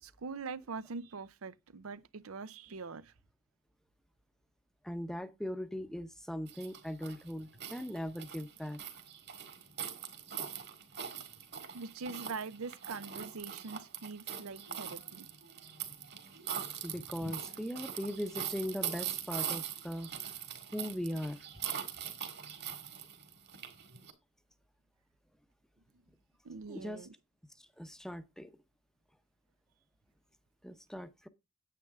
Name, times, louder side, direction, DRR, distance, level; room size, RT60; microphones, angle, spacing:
voice 1, 0.0-3.1 11.7-15.3 26.4-27.1, right 4 dB, 85° right, 0.6 m, -43 dB
voice 2, 4.8-8.8 16.8-20.1 20.7-21.5 26.7-27.1 27.8-28.5 30.6-31.3, equal, ahead, 0.7 m, -39 dB
sound 1, 6.5-24.1, right 8 dB, 50° right, 2.1 m, -42 dB
9.6 x 8.6 x 3.5 m
head